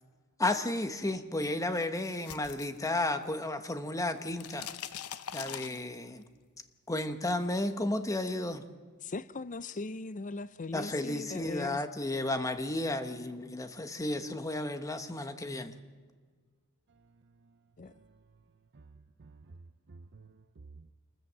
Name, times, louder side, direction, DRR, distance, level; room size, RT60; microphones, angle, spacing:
voice 1, 0.4-4.7 5.3-6.2 6.9-8.6 10.7-15.8, left 2 dB, 15° left, 1.1 m, -33 dB
sound 1, 1.8-3.5 3.8-6.2, left 9 dB, 80° left, 0.8 m, -43 dB
voice 2, 9.0-11.8 17.8-17.9, left 3 dB, 35° left, 0.6 m, -39 dB
voice 3, 16.9-18.2 18.7-20.9, right 3 dB, 50° right, 0.6 m, -55 dB
27.0 x 14.0 x 7.5 m
head